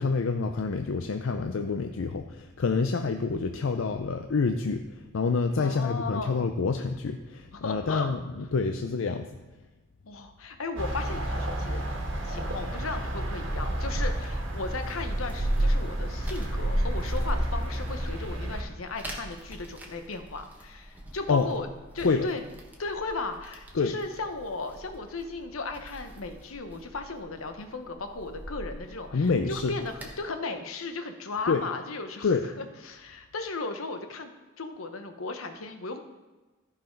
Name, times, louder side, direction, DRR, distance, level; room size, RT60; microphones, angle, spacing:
voice 1, 0.0-9.3 21.3-21.5 22.0-22.3 23.7-24.0 29.1-29.7 31.5-31.6 32.2-32.5, left 4 dB, 65° left, 6 dB, 0.5 m, -27 dB
voice 2, 5.6-6.4 7.5-8.1 10.1-11.8 12.2-21.7 21.9-22.4 22.8-36.0, left 3 dB, 85° left, 7 dB, 1.0 m, -36 dB
sound 1, 10.8-18.6, right 1 dB, 60° right, 1.6 m, -29 dB
sound 2, 14.3-30.2, right 1 dB, 10° right, 1.2 m, -46 dB
14.0 x 4.8 x 5.2 m, 1.2 s
head